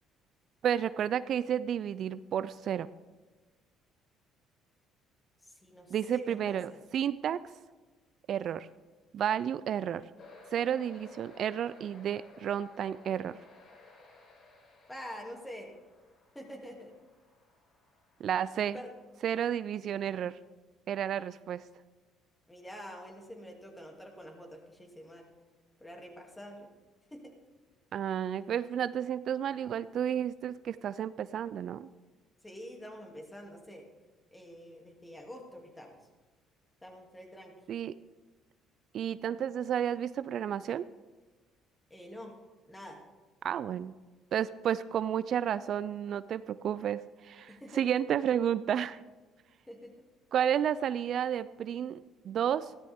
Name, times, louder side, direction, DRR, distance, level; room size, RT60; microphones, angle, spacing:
voice 1, 0.6-2.9 5.9-7.4 8.3-8.7 9.1-10.1 10.5-13.4 18.2-18.8 19.2-20.3 20.9-21.6 27.9-31.9 37.7-37.9 38.9-40.9 43.4-43.9 44.3-49.0 50.3-52.7, right 9 dB, 60° right, 16 dB, 0.3 m, -31 dB
voice 2, 5.5-6.8 14.9-15.7 16.3-16.9 18.7-18.9 22.5-25.3 25.8-26.7 27.1-27.3 32.4-33.8 34.3-36.0 36.8-37.5 41.9-42.3 42.7-43.0 47.5-48.0 49.7-49.9, equal, 15° left, 2 dB, 2.5 m, -46 dB
sound 1, 10.2-19.4, left 2 dB, 55° left, 4.1 m, -57 dB
14.5 x 12.5 x 3.6 m, 1.3 s
supercardioid pair, 75°, 0 cm